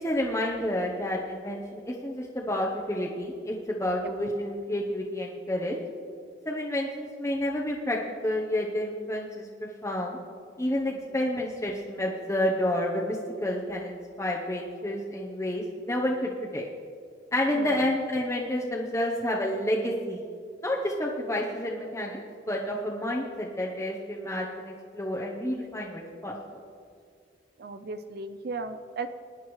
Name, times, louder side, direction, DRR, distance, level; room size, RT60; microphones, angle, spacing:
voice 1, 0.0-5.8 6.4-10.2 10.6-16.6 17.3-20.2 20.6-22.2 22.5-26.3, left 1 dB, 15° left, -3 dB, 0.9 m, -30 dB
voice 2, 17.5-17.8 27.6-29.1, right 3 dB, 55° right, 9 dB, 0.5 m, -36 dB
21.0 x 10.5 x 3.2 m, 2.3 s
head